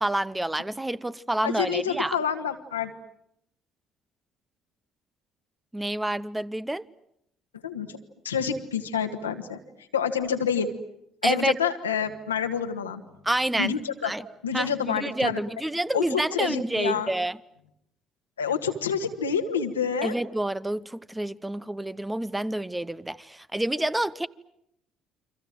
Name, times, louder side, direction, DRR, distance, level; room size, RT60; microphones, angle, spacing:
voice 1, 0.0-2.2 5.7-6.8 11.2-11.6 13.2-13.7 14.0-14.2 14.5-17.4 20.0-24.3, right 1 dB, 10° right, 1.1 m, -28 dB
voice 2, 1.4-2.9 7.6-8.0 8.2-9.6 9.9-10.7 11.2-13.0 13.6-14.1 14.4-15.4 15.9-17.1 18.4-20.2, left 7 dB, 90° left, 1.7 m, -28 dB
29.5 x 25.0 x 7.7 m
hypercardioid pair, 50°, 0 cm